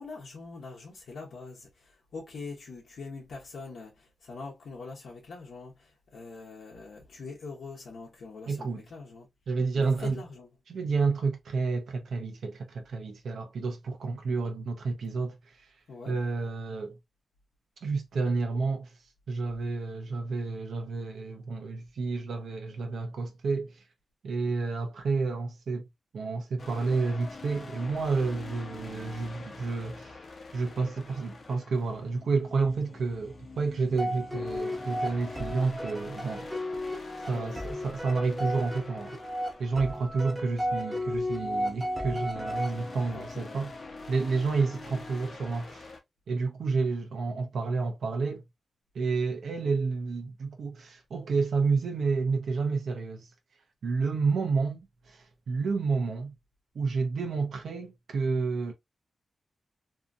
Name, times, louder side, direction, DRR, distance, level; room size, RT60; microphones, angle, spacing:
voice 1, 0.0-9.3 9.7-10.5 15.9-16.2 37.3-37.7 43.1-43.7, left 4 dB, 80° left, 0.8 m, -43 dB
voice 2, 8.5-8.8 9.5-10.1 10.7-15.7 16.1-17.0 17.8-19.0 19.3-23.8 24.2-25.9 26.1-30.2 30.5-36.5 37.3-39.2 39.6-43.7 44.1-45.9 46.3-48.4 48.9-53.3 53.8-56.3 56.7-58.7, right 4 dB, 80° right, 0.6 m, -30 dB
sound 1, 26.6-46.0, left 3 dB, 45° left, 0.7 m, -46 dB
sound 2, 34.0-43.3, equal, 10° right, 0.7 m, -34 dB
2.7 x 2.6 x 2.4 m
wide cardioid pair, 170°, 0 cm